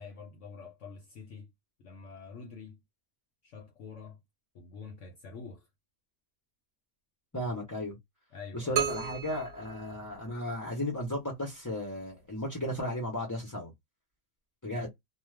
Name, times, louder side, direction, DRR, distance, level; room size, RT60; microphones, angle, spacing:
voice 1, 0.0-1.5 1.8-2.8 3.4-4.2 4.5-5.7 8.3-8.8, left 5 dB, 65° left, 0.9 m, -46 dB
voice 2, 7.3-8.0 8.5-13.7 14.6-14.9, left 1 dB, 20° left, 0.6 m, -35 dB
sound 1, 8.8-10.7, right 8 dB, 85° right, 1.1 m, -35 dB
2.4 x 2.3 x 3.1 m
omnidirectional pair, 1.5 m